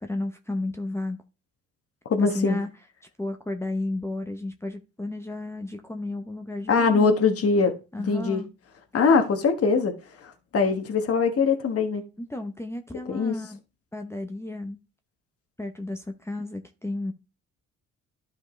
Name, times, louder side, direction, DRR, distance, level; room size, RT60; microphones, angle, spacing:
voice 1, 0.0-1.2 2.2-2.7 3.2-7.1 7.9-8.5 12.2-13.6 13.9-14.8 15.6-17.1, left 2 dB, 10° left, 0.9 m, -32 dB
voice 2, 2.1-2.6 6.7-7.7 8.1-8.4 8.9-9.9 10.5-12.0 13.1-13.3, left 4 dB, 50° left, 1.4 m, -22 dB
11.5 x 5.0 x 3.2 m
cardioid pair, 90°, 30 cm